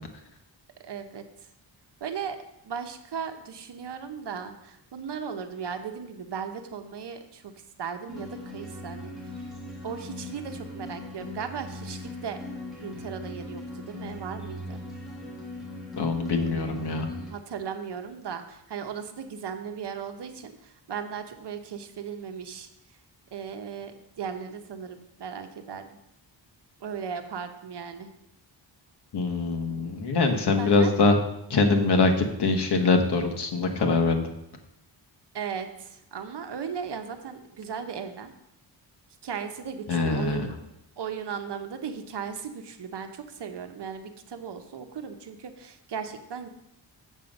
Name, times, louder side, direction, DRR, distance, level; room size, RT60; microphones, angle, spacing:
voice 1, 0.8-1.2 2.0-2.4 2.6-7.5 7.8-9.1 9.8-12.4 12.8-14.8 17.3-22.7 23.3-26.0 26.8-28.1 30.6-30.9 35.3-38.3 39.2-40.5 41.0-46.5, right 7 dB, 65° right, 7 dB, 1.0 m, -37 dB
sound 1, 8.1-17.3, left 1 dB, ahead, 1.8 m, -39 dB
voice 2, 16.0-17.1 29.1-31.2 31.5-34.2 39.9-40.5, left 3 dB, 60° left, 5 dB, 1.3 m, -23 dB
7.4 x 7.2 x 5.3 m, 0.84 s
wide cardioid pair, 150°, 44 cm